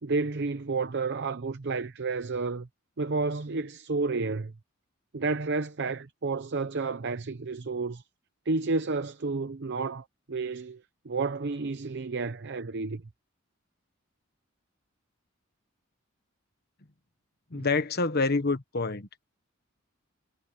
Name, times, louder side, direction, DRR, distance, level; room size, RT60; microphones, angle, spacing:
voice 1, 0.0-2.7 3.0-4.5 5.1-8.0 8.5-13.1 17.5-17.6, right 3 dB, 55° right, 0.7 m, -31 dB
voice 2, 17.5-19.1, left 3 dB, 50° left, 1.3 m, -27 dB
head